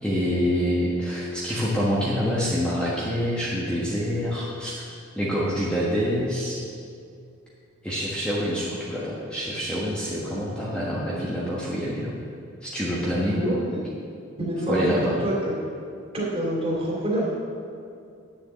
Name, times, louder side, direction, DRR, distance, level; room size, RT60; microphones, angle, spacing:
voice 1, 0.0-4.8 5.2-6.6 7.8-12.1 12.6-13.4 14.7-15.2, equal, 5° left, -7 dB, 1.4 m, -26 dB
voice 2, 13.3-13.8 14.4-14.9 15.2-15.3 16.1-17.3, right 1 dB, 30° right, -4 dB, 2.7 m, -26 dB
9.8 x 7.1 x 7.6 m, 2.4 s
head